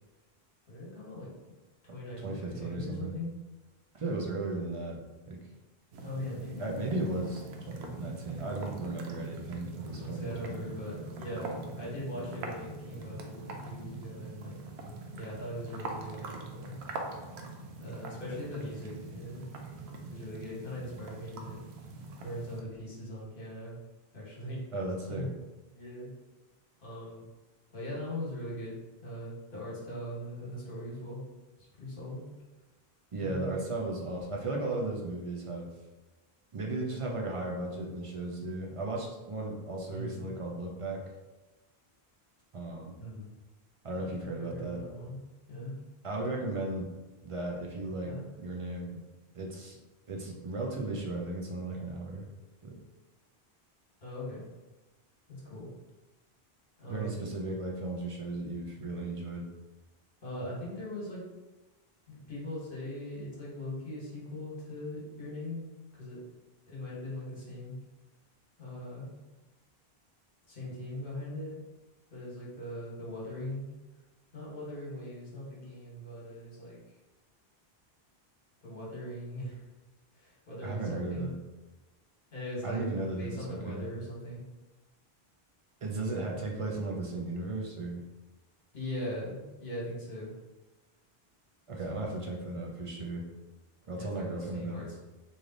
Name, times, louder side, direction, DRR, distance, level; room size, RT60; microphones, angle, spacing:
voice 1, 0.7-1.3 1.8-3.3 6.0-6.7 10.0-14.6 15.1-16.8 17.8-19.5 20.1-21.6 22.2-23.8 24.1-24.6 25.0-25.3 25.7-26.1 26.8-27.2 27.7-28.7 29.0-31.2 31.6-32.2 33.2-33.5 39.9-40.3 43.0-43.3 43.9-45.2 45.5-45.8 48.1-48.3 48.9-49.0 54.0-54.5 55.3-55.7 56.8-57.1 60.2-61.2 62.1-65.6 65.9-66.2 66.7-67.7 68.6-69.1 70.5-71.6 72.1-73.6 74.3-76.8 78.6-79.7 80.1-81.3 82.3-82.8 83.2-84.4 88.7-90.4 91.9-92.1 94.0-95.0, left 1 dB, 60° left, -5 dB, 1.3 m, -40 dB
voice 2, 2.2-3.1 3.9-5.0 5.3-5.4 6.6-10.7 24.7-25.3 33.1-35.7 36.5-41.0 42.5-42.9 43.8-44.8 46.0-46.9 47.2-48.1 48.4-48.9 49.3-49.8 50.1-52.3 52.6-52.8 56.9-59.5 80.6-81.4 82.6-83.9 85.8-88.0 91.7-93.2 93.9-94.9, right 2 dB, 40° right, -1 dB, 0.5 m, -35 dB
sound 1, 5.9-22.6, right 2 dB, 85° right, 0.8 m, -43 dB
3.2 x 2.6 x 3.8 m, 1.1 s
omnidirectional pair, 1.0 m